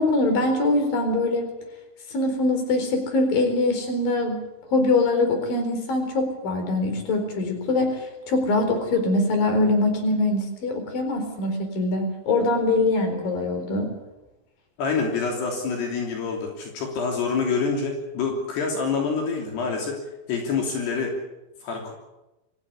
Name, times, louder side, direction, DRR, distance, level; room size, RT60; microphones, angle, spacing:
voice 1, 0.0-1.5 2.1-4.4 4.7-13.9, left 2 dB, 60° left, 5 dB, 5.9 m, -23 dB
voice 2, 14.8-20.0 20.3-21.2 21.6-21.9, left 4 dB, 75° left, 1 dB, 5.3 m, -26 dB
26.0 x 15.5 x 9.8 m, 0.98 s
omnidirectional pair, 4.7 m